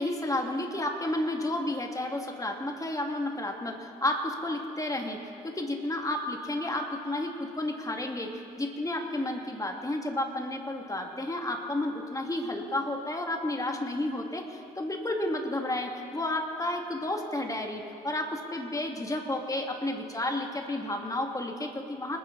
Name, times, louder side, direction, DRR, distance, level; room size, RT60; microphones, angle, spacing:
voice 1, 0.0-22.2, left 1 dB, 15° left, 2 dB, 2.5 m, -32 dB
28.0 x 10.0 x 4.2 m, 2.6 s
hypercardioid pair, 45°, 20 cm